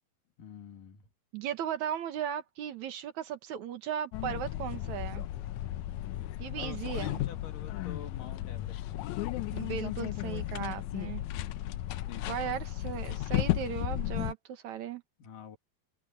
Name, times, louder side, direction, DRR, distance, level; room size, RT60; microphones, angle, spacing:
voice 1, 0.4-1.1 6.5-9.0 11.2-12.6 15.2-15.6, left 7 dB, 65° left, 3.8 m, -48 dB
voice 2, 1.3-5.2 6.4-7.2 9.5-11.2 12.3-15.0, right 9 dB, 60° right, 2.3 m, -36 dB
sound 1, 4.1-14.3, left 14 dB, 85° left, 1.6 m, -34 dB
omnidirectional pair, 4.2 m